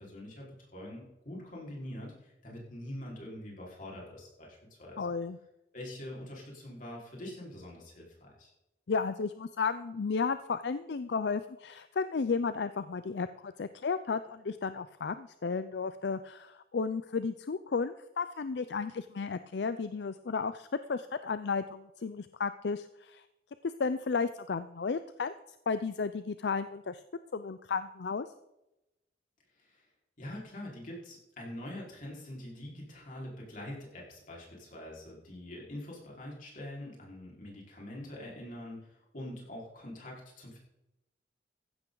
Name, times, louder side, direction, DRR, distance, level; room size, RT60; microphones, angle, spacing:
voice 1, 0.0-5.1 5.7-8.5 29.6-29.9 30.2-40.6, left 1 dB, 45° left, -3 dB, 4.5 m, -44 dB
voice 2, 5.0-5.4 8.9-23.2 23.8-25.3 25.7-27.0 27.3-28.3, left 5 dB, 70° left, 12 dB, 0.5 m, -33 dB
15.0 x 12.0 x 3.9 m, 0.93 s
head